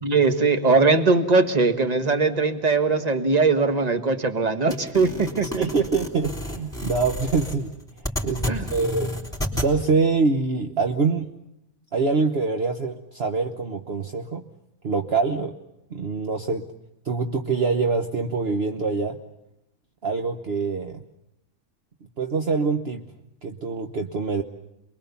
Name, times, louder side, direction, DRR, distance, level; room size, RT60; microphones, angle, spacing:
voice 1, 0.0-5.7 8.5-8.7, right 3 dB, 30° right, 8 dB, 1.6 m, -21 dB
sound 1, 4.7-9.7, left 1 dB, ahead, 3.5 m, -31 dB
voice 2, 5.6-7.7 8.2-9.1 9.5-11.3 11.9-14.4 14.8-15.5 15.9-16.6 17.0-19.2 20.0-21.0 22.2-23.0 23.4-24.4, right 4 dB, 50° right, 4 dB, 1.3 m, -24 dB
28.0 x 22.0 x 7.1 m, 0.85 s
omnidirectional pair, 1.4 m